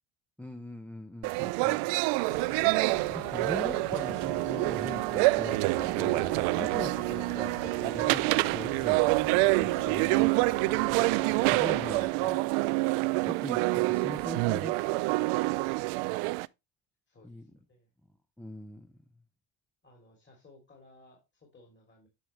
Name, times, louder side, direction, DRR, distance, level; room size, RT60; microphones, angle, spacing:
voice 1, 0.4-1.9 3.1-12.5 13.2-15.3 17.2-17.5 18.4-19.0, left 1 dB, 5° left, 0.8 m, -42 dB
sound 1, 1.2-16.5, right 23 dB, 90° right, 0.5 m, -27 dB
sound 2, 2.3-12.1, left 5 dB, 55° left, 2.7 m, -46 dB
voice 2, 15.9-16.3 17.1-17.9 19.8-22.1, left 2 dB, 20° left, 3.1 m, -60 dB
10.5 x 6.3 x 3.1 m
cardioid pair, 115°, 48 cm